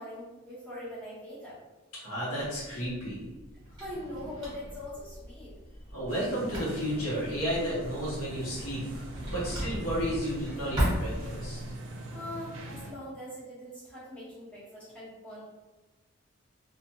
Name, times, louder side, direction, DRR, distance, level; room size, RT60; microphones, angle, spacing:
voice 1, 0.0-1.6 3.7-5.6 12.1-15.4, left 1 dB, 5° left, -11 dB, 0.9 m, -42 dB
voice 2, 2.0-3.3 5.9-9.0 9.3-11.6, equal, 80° left, -7 dB, 1.1 m, -32 dB
Drawer open or close, 2.6-11.7, equal, 20° right, 1.1 m, -37 dB
sound 1, 6.1-12.9, right 1 dB, 65° right, 0.5 m, -43 dB
2.5 x 2.3 x 2.8 m, 1.2 s
head